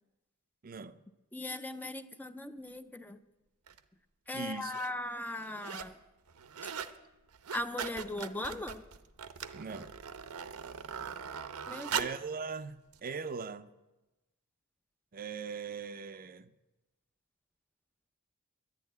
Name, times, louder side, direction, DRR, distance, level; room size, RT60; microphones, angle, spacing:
voice 1, 0.6-1.0 4.3-4.7 9.5-9.9 11.9-13.7 15.1-16.5, right 5 dB, 40° right, 0.5 m, -40 dB
voice 2, 1.3-3.2 4.3-6.0 7.5-8.8 11.7-12.1, left 1 dB, 10° left, 0.5 m, -39 dB
sound 1, 3.7-3.8 4.5-4.9 5.3-6.0 6.3-7.0 7.3-12.3 12.9-13.0, right 7 dB, 80° right, 0.8 m, -40 dB
11.5 x 11.0 x 9.4 m
head